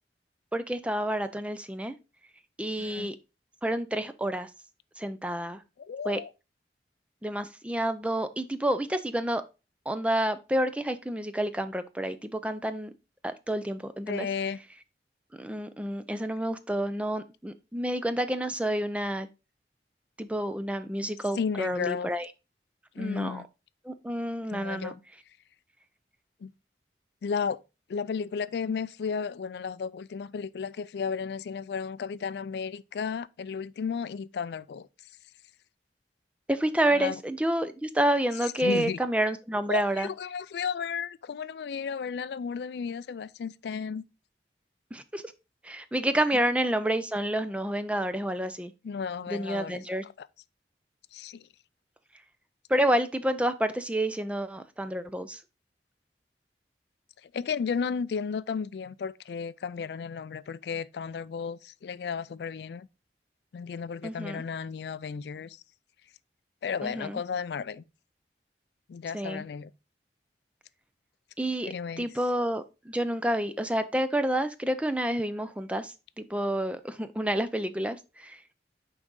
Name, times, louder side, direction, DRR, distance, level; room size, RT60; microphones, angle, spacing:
voice 1, 0.5-1.9 2.6-3.2 3.6-4.5 5.0-5.6 6.0-6.2 7.2-9.4 9.9-12.9 13.2-14.3 15.4-19.3 20.2-22.3 23.0-23.4 23.8-24.9 36.5-40.1 44.9-45.2 45.6-48.7 49.3-50.0 52.7-55.4 64.0-64.4 66.8-67.2 69.1-69.4 71.4-78.4, right 1 dB, 5° right, 0.4 m, -29 dB
voice 2, 5.8-6.3 14.1-14.6 21.4-22.1 23.0-23.5 24.5-25.0 26.4-26.5 27.2-27.6 27.9-34.9 36.9-37.2 38.6-39.0 39.7-44.0 48.8-49.8 50.2-50.3 51.1-51.5 57.2-62.9 63.5-65.6 66.6-67.8 68.9-69.7 71.7-72.1, left 6 dB, 70° left, 0.3 m, -33 dB
6.3 x 4.7 x 3.8 m
head